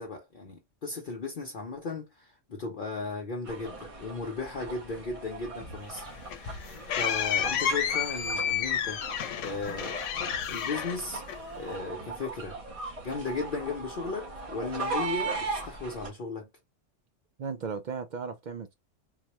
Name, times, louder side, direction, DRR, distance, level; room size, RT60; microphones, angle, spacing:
voice 1, 0.0-9.0 9.4-10.0 10.5-11.2 11.6-12.6 13.0-16.5, left 3 dB, 50° left, 0.8 m, -36 dB
sound 1, 3.4-16.1, right 3 dB, 30° right, 0.9 m, -39 dB
sound 2, 5.9-11.7, left 8 dB, 90° left, 0.9 m, -31 dB
voice 2, 17.4-18.7, right 5 dB, 55° right, 0.5 m, -36 dB
3.9 x 2.2 x 2.9 m
omnidirectional pair, 1.2 m